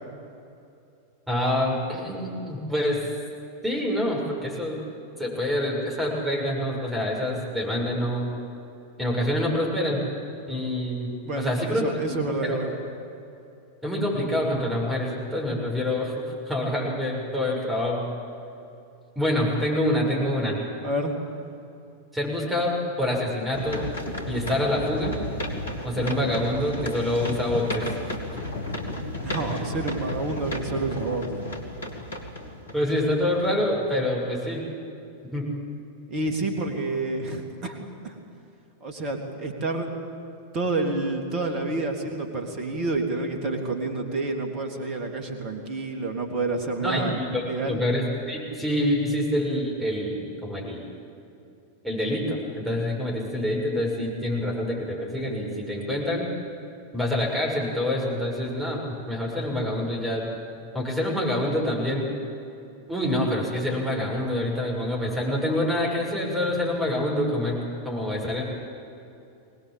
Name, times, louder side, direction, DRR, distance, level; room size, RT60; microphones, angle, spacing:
voice 1, 1.3-3.0 3.6-4.8 5.2-8.3 9.0-10.0 10.5-11.8 12.4-12.6 13.8-16.1 16.5-18.1 19.2-20.6 22.1-23.8 24.3-25.1 25.8-27.9 29.5-29.6 32.7-34.6 35.3-35.5 46.8-50.9 51.8-56.3 56.9-58.8 59.1-60.3 60.7-62.1 62.9-68.4, left 1 dB, 5° right, -3 dB, 6.9 m, -26 dB
voice 2, 11.2-12.7 20.8-21.1 29.2-31.5 36.1-37.8 38.0-38.1 38.8-39.9 40.5-47.8, right 2 dB, 35° right, 4 dB, 3.3 m, -29 dB
sound 1, 23.5-33.8 34.4-34.5, left 1 dB, 70° left, 2.4 m, -33 dB
23.0 x 19.0 x 8.7 m, 2.7 s
figure-of-eight pair, 90°, 0 cm